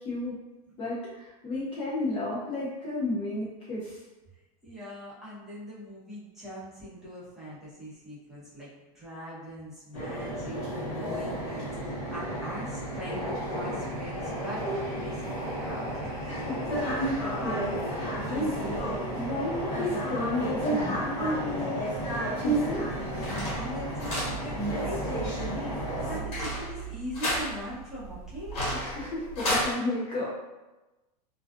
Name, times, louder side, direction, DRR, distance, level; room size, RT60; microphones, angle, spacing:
voice 1, 0.0-0.4 0.8-4.0 16.3-16.6 17.0-18.7 19.1-21.8 22.4-22.8 23.1-23.3 28.7-30.3, left 2 dB, 25° left, -8 dB, 0.6 m, -33 dB
voice 2, 4.6-14.7 14.9-16.5 23.5-28.7, equal, ahead, -11 dB, 0.8 m, -41 dB
sound 1, 9.9-26.2, right 1 dB, 55° left, 1.0 m, -32 dB
sound 2, 22.7-29.7, equal, 70° left, 1.2 m, -33 dB
2.4 x 2.3 x 2.4 m, 1.1 s
supercardioid pair, 145°, 20 cm